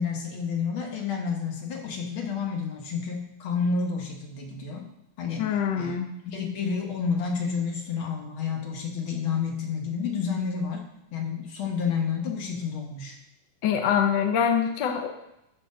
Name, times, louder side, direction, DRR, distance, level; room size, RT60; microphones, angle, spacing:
voice 1, 0.0-4.9 5.2-5.5 5.7-6.0 6.3-10.9 11.1-13.2, left 5 dB, 50° left, 2 dB, 2.0 m, -30 dB
voice 2, 5.4-6.1 13.6-15.1, left 8 dB, 75° left, 4 dB, 1.0 m, -24 dB
13.0 x 5.1 x 5.3 m, 0.84 s
omnidirectional pair, 3.3 m